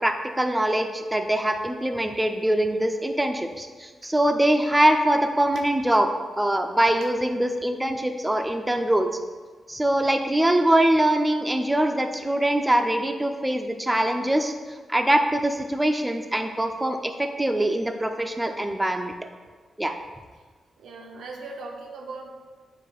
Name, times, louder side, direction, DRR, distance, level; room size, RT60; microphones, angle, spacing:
voice 1, 0.0-6.1 6.4-9.1 9.7-14.5 14.9-17.1 17.4-19.1 19.8-20.0, right 1 dB, 10° right, 5 dB, 0.3 m, -23 dB
voice 2, 20.8-22.3, right 3 dB, 90° right, 1 dB, 0.5 m, -38 dB
4.8 x 2.5 x 3.8 m, 1.4 s
cardioid pair, 80°, 0 cm